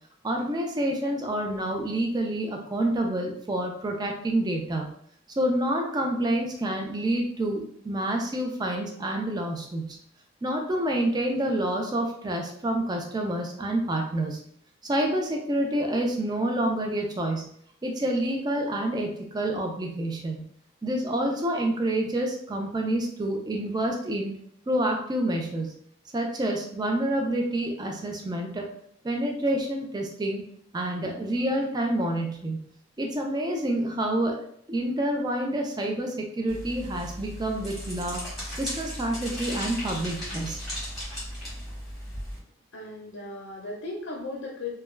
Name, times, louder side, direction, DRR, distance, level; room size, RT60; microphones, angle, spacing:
voice 1, 0.2-4.9 5.4-10.0 10.4-14.4 14.8-17.5 17.8-20.4 20.8-24.4 24.7-25.7 26.1-28.7 29.0-30.4 30.7-32.6 33.0-38.2 38.6-40.6, right 1 dB, 20° right, 1 dB, 0.3 m, -28 dB
sound 1, 36.5-42.4, equal, ahead, 1.1 m, -36 dB
voice 2, 42.7-44.8, left 2 dB, 75° left, -2 dB, 0.5 m, -36 dB
2.2 x 2.2 x 3.1 m, 0.65 s
head